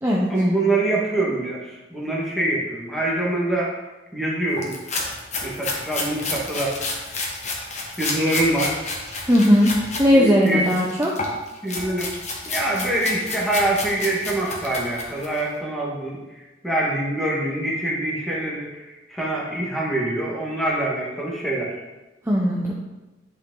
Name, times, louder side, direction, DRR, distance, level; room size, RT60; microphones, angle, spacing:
voice 1, 0.3-3.7 4.1-4.7 5.4-6.8 8.0-8.8 10.1-10.8 11.6-12.1 12.4-21.7, right 1 dB, ahead, -4 dB, 1.7 m, -25 dB
sound 1, 4.6-10.1 10.4-15.4, left 3 dB, 40° left, 1.3 m, -31 dB
voice 2, 9.3-9.7 10.0-11.1 22.3-22.7, equal, 15° right, -4 dB, 0.8 m, -17 dB
10.5 x 4.9 x 3.9 m, 1.1 s
head